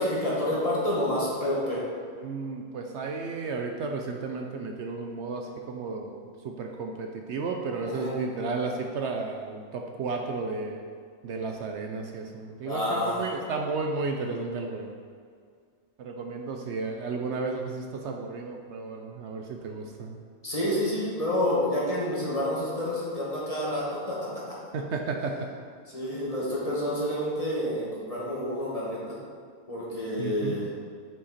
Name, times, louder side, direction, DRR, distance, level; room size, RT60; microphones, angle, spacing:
voice 1, 0.0-1.8 7.8-8.2 12.6-13.3 20.4-24.2 25.9-29.2 29.7-30.7, left 1 dB, 30° left, -7 dB, 1.9 m, -28 dB
voice 2, 2.2-10.8 11.2-15.0 16.0-20.2 24.7-25.4 30.2-30.6, right 4 dB, 65° right, 3 dB, 0.9 m, -33 dB
7.7 x 5.7 x 4.2 m, 2.1 s
omnidirectional pair, 1.3 m